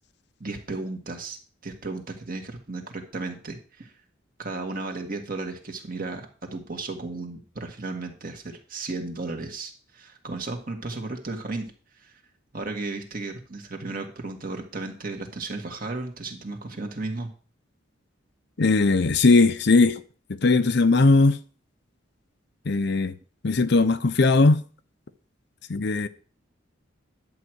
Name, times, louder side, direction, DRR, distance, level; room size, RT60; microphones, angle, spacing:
voice 1, 0.4-1.4 1.6-3.9 4.4-11.7 12.0-12.1 12.5-17.3, right 3 dB, 45° right, 1.9 m, -34 dB
voice 2, 18.6-20.0 20.4-21.4 22.7-23.2 23.4-24.6 25.7-26.1, left 3 dB, 60° left, 0.7 m, -19 dB
11.0 x 4.7 x 7.9 m
head